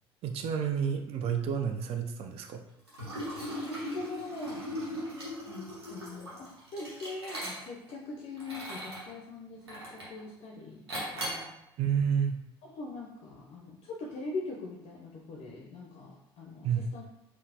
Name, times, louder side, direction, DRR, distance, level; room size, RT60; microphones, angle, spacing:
voice 1, 0.2-2.6 11.8-12.4 16.6-16.9, right 7 dB, 50° right, 5 dB, 0.4 m, -30 dB
Liquid, 2.9-7.9 8.4-9.1 9.7-10.2 10.9-11.5, equal, 85° right, 0.8 m, -38 dB
voice 2, 3.6-4.7 5.5-11.5 12.8-17.0, left 3 dB, 50° left, 0 dB, 0.5 m, -42 dB
3.8 x 2.0 x 2.7 m, 0.82 s
figure-of-eight pair, 55°, 13 cm